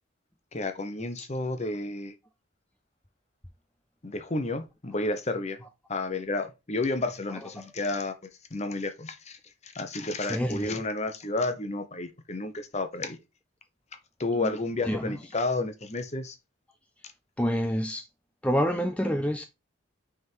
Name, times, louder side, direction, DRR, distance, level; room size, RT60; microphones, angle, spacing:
voice 1, 0.5-2.1 4.0-5.6 5.9-8.1 8.5-9.4 9.6-13.2 14.2-16.4, left 2 dB, 35° left, 0.9 m, -31 dB
voice 2, 10.2-10.8 14.4-14.5 14.8-15.2 17.4-18.0 18.4-19.5, equal, 5° left, 0.4 m, -27 dB
6.3 x 3.7 x 4.5 m
head